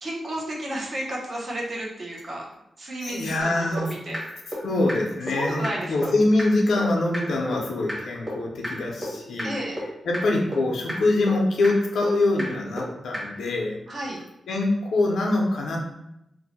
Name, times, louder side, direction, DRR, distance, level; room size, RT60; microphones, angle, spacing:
voice 1, 0.0-2.5 2.8-4.2 5.4-6.1 9.4-9.8 13.9-14.2, right 1 dB, 40° right, -2 dB, 0.7 m, -32 dB
voice 2, 3.0-3.9 4.6-9.5 10.0-13.8 14.5-15.8, left 2 dB, 80° left, 0 dB, 0.6 m, -24 dB
sound 1, 3.4-3.5 3.8-3.9 4.1-4.2 4.5-4.6 4.9-5.0 5.3-5.4 5.6-5.7 6.0-6.1 6.4-6.5 6.8-6.9 7.1-7.2 7.5-7.6 7.9-8.0 8.3-8.4 8.6-8.7 9.0-9.1 9.4-9.5 9.8-9.9 10.1-10.2 10.5-10.6 10.9-11.0 11.3-11.4 11.6-11.7 12.0-12.1 12.4-12.5 12.8-12.9 13.1-13.2, equal, 15° right, 1.0 m, -31 dB
2.6 x 2.1 x 4.0 m, 0.85 s
wide cardioid pair, 165°, 0 cm